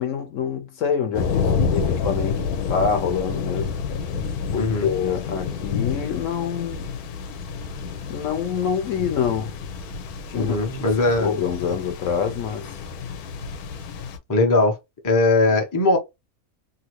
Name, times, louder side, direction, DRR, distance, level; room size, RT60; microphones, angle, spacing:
voice 1, 0.0-1.4 1.7-2.4 2.7-3.7 4.5-6.9 8.1-9.5 10.3-10.7 11.2-12.7, left 7 dB, 65° left, 0.9 m, -26 dB
sound 1, 1.1-14.2, left 5 dB, 90° left, 1.1 m, -29 dB
voice 2, 4.6-4.9 10.4-11.3 14.3-14.8 15.0-16.0, left 2 dB, 25° left, 0.4 m, -19 dB
2.8 x 2.6 x 2.9 m
omnidirectional pair, 1.6 m